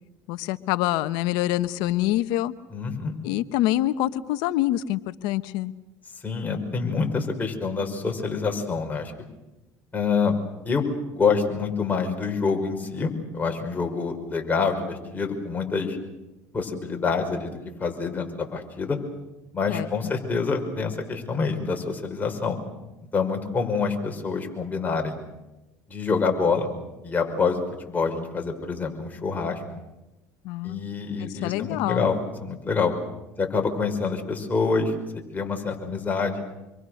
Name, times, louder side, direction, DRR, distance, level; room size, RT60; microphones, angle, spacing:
voice 1, 0.3-2.5 3.2-5.7 19.7-20.1 30.4-30.8 31.2-32.1, left 15 dB, 75° left, 13 dB, 1.0 m, -26 dB
voice 2, 2.7-3.1 6.2-9.1 9.9-10.3 10.6-10.8 11.1-16.0 16.5-19.0 19.5-22.6 23.1-25.2 25.9-26.7 27.0-29.6 30.6-32.2 32.4-32.9 33.4-34.9 35.3-36.4, left 5 dB, 25° left, 3 dB, 5.4 m, -26 dB
27.5 x 23.5 x 6.6 m, 1.0 s
supercardioid pair, 90°, 7 cm